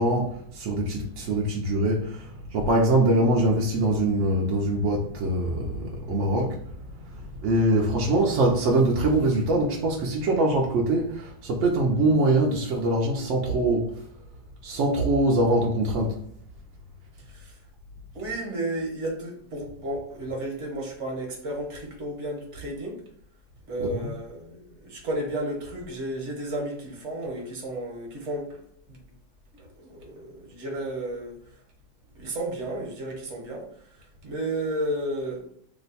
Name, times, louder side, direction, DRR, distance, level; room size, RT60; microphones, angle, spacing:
voice 1, 0.0-14.0 14.6-16.2 23.8-24.1, right 1 dB, 70° right, 0.7 m, -23 dB
voice 2, 18.1-23.0 23.7-28.6 28.9-29.0 29.5-31.4 32.1-33.7 34.2-35.4, right 1 dB, 50° right, 1.1 m, -32 dB
3.0 x 2.1 x 4.0 m
omnidirectional pair, 1.8 m